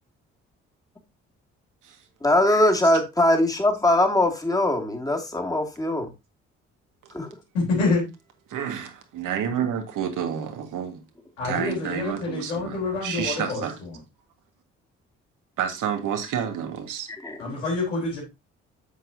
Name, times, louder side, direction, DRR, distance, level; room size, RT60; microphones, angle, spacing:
voice 1, 2.2-6.1 7.1-7.3 17.2-17.4, left 1 dB, 10° left, 2.3 m, -21 dB
voice 2, 7.5-8.1 11.4-13.9 17.4-18.2, left 3 dB, 85° left, 3.8 m, -27 dB
voice 3, 8.5-11.0 11.4-13.8 15.6-17.1, right 8 dB, 60° right, 1.8 m, -29 dB
8.4 x 7.6 x 2.7 m
figure-of-eight pair, 45°, 36 cm